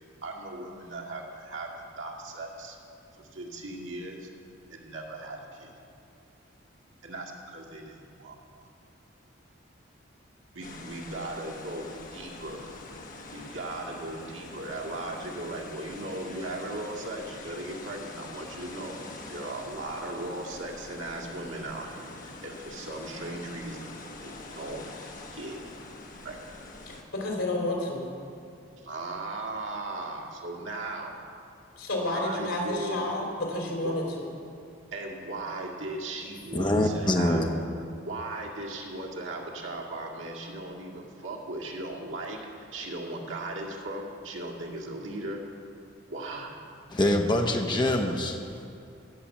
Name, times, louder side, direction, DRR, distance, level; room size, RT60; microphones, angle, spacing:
voice 1, 0.2-2.8 3.2-4.3 4.7-5.7 7.0-8.7 10.5-12.6 13.3-23.9 24.2-24.8 25.3-25.6 26.2-26.4 28.8-31.1 32.0-33.0 33.8-34.0 34.9-37.5 38.0-45.4 46.1-46.6, right 2 dB, 80° right, -1 dB, 2.0 m, -37 dB
sound 1, 10.6-27.0, left 2 dB, 45° left, 1.2 m, -44 dB
voice 2, 26.9-28.1 31.8-34.3, left 1 dB, 80° left, 0 dB, 3.2 m, -30 dB
voice 3, 36.5-37.5 46.9-48.7, left 1 dB, 20° left, 2 dB, 0.8 m, -25 dB
16.0 x 6.8 x 7.3 m, 2.5 s
head